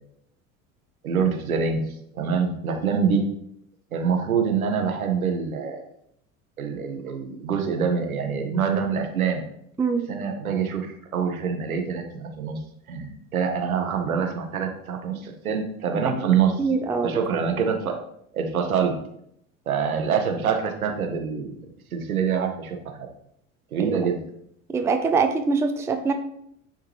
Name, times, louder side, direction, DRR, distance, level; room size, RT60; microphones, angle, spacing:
voice 1, 1.0-3.2 3.9-5.8 6.6-9.4 10.1-12.6 12.9-16.5 17.0-18.0 18.3-18.9 19.7-21.6 21.9-22.8 23.7-24.2, right 6 dB, 80° right, 3 dB, 1.1 m, -25 dB
voice 2, 16.2-17.2 23.8-24.1 24.7-26.1, right 4 dB, 5° right, 5 dB, 0.5 m, -24 dB
9.9 x 3.6 x 3.0 m, 0.73 s
figure-of-eight pair, 75°, 42 cm